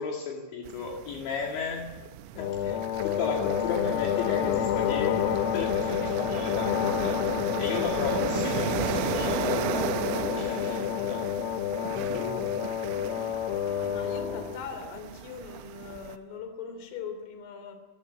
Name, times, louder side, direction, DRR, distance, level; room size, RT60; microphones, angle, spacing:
voice 1, 0.0-1.9 2.4-7.3 7.6-10.0 10.4-11.3 12.0-12.4, left 5 dB, 65° left, 0 dB, 4.3 m, -34 dB
sound 1, 0.7-16.2, right 13 dB, 80° right, 3.3 m, -36 dB
sound 2, 2.4-14.6, left 10 dB, 80° left, 3.6 m, -29 dB
voice 2, 13.9-17.8, left 6 dB, 50° left, 7 dB, 4.4 m, -40 dB
27.0 x 15.5 x 9.3 m, 1.1 s
omnidirectional pair, 5.9 m